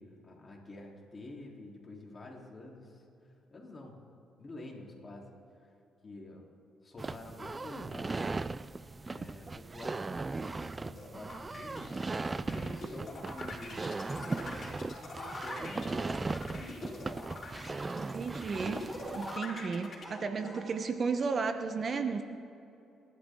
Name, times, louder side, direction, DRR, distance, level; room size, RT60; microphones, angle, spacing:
voice 1, 0.0-4.0 4.4-5.7 6.0-6.4 6.8-8.5 9.0-17.0, left 2 dB, 30° left, -2 dB, 3.5 m, -49 dB
sound 1, 7.0-19.4, right 3 dB, 25° right, 0.4 m, -38 dB
sound 2, 11.0-20.0, left 3 dB, 45° left, 4.6 m, -44 dB
sound 3, 14.2-14.9 15.3-15.6 18.5-19.5 20.0-20.7, equal, 10° right, 4.5 m, -48 dB
voice 2, 17.9-22.2, right 5 dB, 45° right, 8 dB, 1.0 m, -34 dB
27.5 x 12.0 x 3.8 m, 2.8 s
cardioid pair, 90°, 0 cm